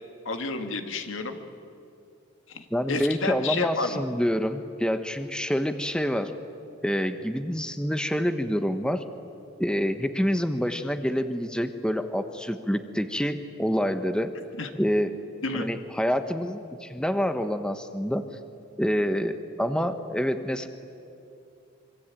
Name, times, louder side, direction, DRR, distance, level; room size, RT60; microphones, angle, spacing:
voice 1, 0.3-1.4 2.5-4.0 14.6-14.7 15.4-15.7, left 3 dB, 85° left, 6 dB, 2.2 m, -30 dB
voice 2, 2.7-6.3 6.8-9.0 9.6-14.3 14.8-15.2 15.5-18.2 18.8-20.7, equal, 5° left, 9 dB, 1.0 m, -27 dB
25.5 x 25.0 x 9.1 m, 2.7 s
head